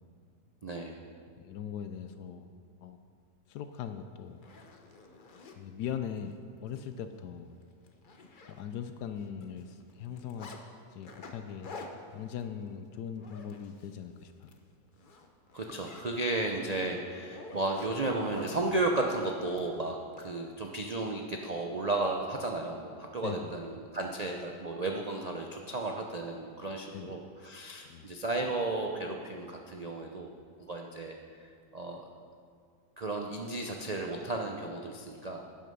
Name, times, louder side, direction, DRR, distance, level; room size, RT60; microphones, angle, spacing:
voice 1, 0.6-1.0 15.5-30.3 30.7-31.5 31.7-32.0 33.0-35.4, right 2 dB, 70° right, 1 dB, 0.3 m, -34 dB
voice 2, 1.4-2.5 2.8-3.0 3.5-4.4 5.6-7.5 8.5-10.5 10.9-11.8 12.1-14.5 23.2-23.5 26.9-27.2 27.9-28.1, left 8 dB, 75° left, 8 dB, 1.1 m, -40 dB
Zipper (clothing), 3.7-3.8 4.3-5.6 6.2-6.3 6.7-6.8 7.2-7.3 7.6-8.9 9.2-10.6 11.0-14.0 14.3-14.6 14.9-18.6 19.6-20.3, left 3 dB, 40° left, 0.7 m, -49 dB
11.5 x 9.5 x 5.4 m, 2.2 s
omnidirectional pair, 1.8 m